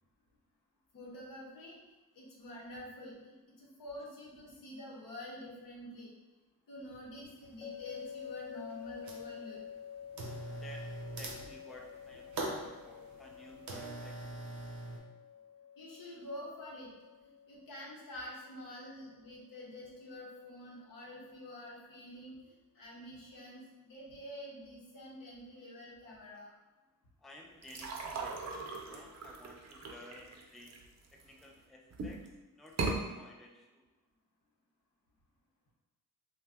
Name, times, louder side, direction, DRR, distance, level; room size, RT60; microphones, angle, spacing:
voice 1, 0.9-1.8 2.1-6.1 6.7-9.6 15.8-16.9 17.2-26.5, left 1 dB, 75° left, -4 dB, 0.9 m, -48 dB
sound 1, 7.2-7.3 7.9-8.4 8.7-9.4 10.1-15.0, right 2 dB, 80° right, 0.7 m, -42 dB
sound 2, 7.6-20.7, left 8 dB, 45° left, 0.8 m, -50 dB
voice 2, 10.6-14.2 27.2-30.7 31.1-32.3 32.6-33.9, left 1 dB, ahead, 0 dB, 0.3 m, -54 dB
sound 3, 27.6-31.4 31.9-32.3 32.7-33.0, right 3 dB, 50° right, 0.5 m, -39 dB
2.6 x 2.2 x 3.4 m, 1.2 s
cardioid pair, 65°, 33 cm